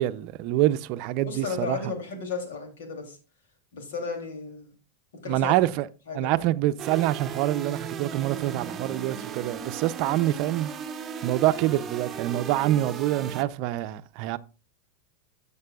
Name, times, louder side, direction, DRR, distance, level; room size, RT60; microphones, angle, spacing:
voice 1, 0.0-1.8 5.3-5.9 6.1-10.7 11.2-14.4, right 14 dB, 55° right, 0.5 m, -26 dB
voice 2, 1.2-3.2 3.7-4.7 5.1-5.5 6.1-6.4, left 4 dB, 80° left, 3.0 m, -34 dB
sound 1, 6.8-13.4, right 7 dB, 25° right, 0.9 m, -36 dB
14.0 x 6.7 x 2.4 m
hypercardioid pair, 105°, 0 cm